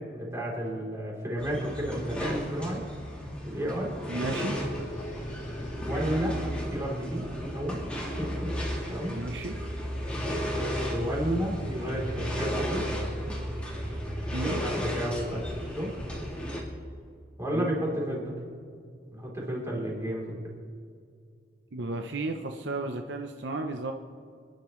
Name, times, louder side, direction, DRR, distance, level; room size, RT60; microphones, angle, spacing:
voice 1, 0.1-2.9 3.4-4.0 5.7-6.4 6.7-7.8 8.2-8.5 8.9-9.2 10.8-12.9 14.4-15.9 17.4-18.3 19.1-20.4, equal, 15° right, -4 dB, 3.5 m, -32 dB
sound 1, 1.4-16.6, equal, 5° left, 2.5 m, -34 dB
sound 2, 1.7-1.9 2.2-2.5 4.2-6.3, equal, 40° left, 1.1 m, -45 dB
voice 2, 4.1-4.6 9.1-9.5 14.3-14.6 17.5-17.8 21.7-23.9, right 2 dB, 65° right, 5 dB, 0.8 m, -33 dB
27.5 x 10.5 x 3.2 m, 2.2 s
head